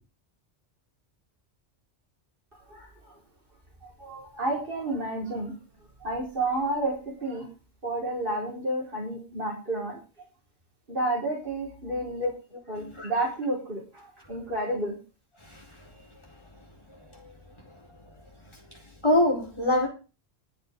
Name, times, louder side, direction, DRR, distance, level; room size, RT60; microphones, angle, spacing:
voice 1, 3.8-5.5 6.0-7.0 7.2-7.5 7.8-10.0 10.9-12.3 12.7-15.0, right 1 dB, 55° right, 5.0 m, -30 dB
voice 2, 12.8-13.1 15.4-15.6 17.2-17.3 18.7-19.9, left 1 dB, 25° left, 4.5 m, -25 dB
23.0 x 8.1 x 3.8 m
omnidirectional pair, 1.1 m